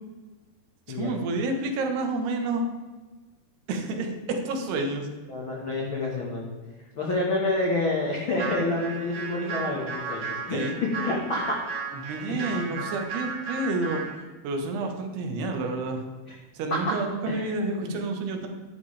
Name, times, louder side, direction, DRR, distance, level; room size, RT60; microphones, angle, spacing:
voice 1, 0.9-2.6 3.7-5.1 10.5-10.8 11.9-14.0 14.4-16.0 16.5-18.5, right 3 dB, 75° right, 3 dB, 3.2 m, -29 dB
voice 2, 5.3-6.5 6.9-10.6 11.0-11.6 12.3-12.7 17.3-17.9, left 2 dB, 80° left, -2 dB, 1.1 m, -28 dB
sound 1, 8.3-14.2, right 4 dB, 55° right, 1.4 m, -35 dB
11.5 x 11.0 x 3.4 m, 1.3 s
omnidirectional pair, 4.8 m